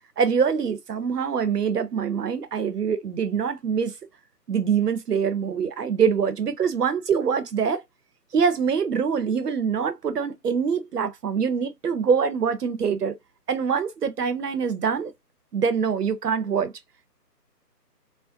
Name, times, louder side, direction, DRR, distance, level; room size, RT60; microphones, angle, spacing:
voice 1, 0.2-3.9 4.5-7.8 8.3-13.1 13.5-15.1 15.5-16.7, right 6 dB, 70° right, 0.7 m, -24 dB
2.5 x 2.1 x 2.5 m
figure-of-eight pair, 150°, 49 cm